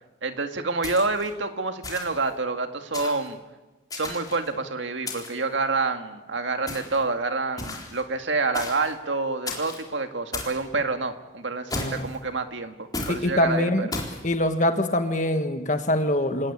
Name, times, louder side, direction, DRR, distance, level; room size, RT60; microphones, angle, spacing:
voice 1, 0.2-3.4 3.9-12.7 13.1-13.9, right 3 dB, 85° right, 7 dB, 2.0 m, -28 dB
sound 1, 0.8-1.3 1.8-2.3 2.9-3.3 3.9-4.5 5.1-5.5 6.7-7.0 7.6-8.0 8.5-8.9 9.5-9.8 10.3-10.6 11.7-12.2 12.9-13.2 13.9-14.2, left 3 dB, 20° left, 4.1 m, -34 dB
voice 2, 11.7-12.1 13.1-13.9 14.2-16.5, left 1 dB, 40° left, 7 dB, 1.6 m, -24 dB
28.0 x 18.5 x 8.8 m, 1.1 s
head